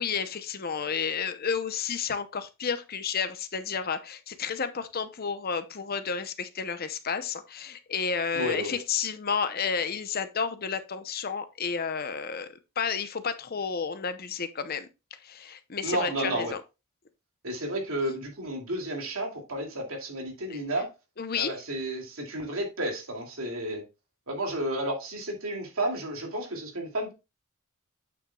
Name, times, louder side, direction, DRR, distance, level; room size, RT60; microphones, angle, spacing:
voice 1, 0.0-16.6 20.5-20.6 21.2-21.5, left 6 dB, 45° left, 0.8 m, -31 dB
voice 2, 8.3-8.8 15.8-16.5 17.4-20.9 21.3-23.8 24.3-27.1, right 1 dB, 85° right, 2.6 m, -32 dB
8.6 x 7.2 x 2.3 m
head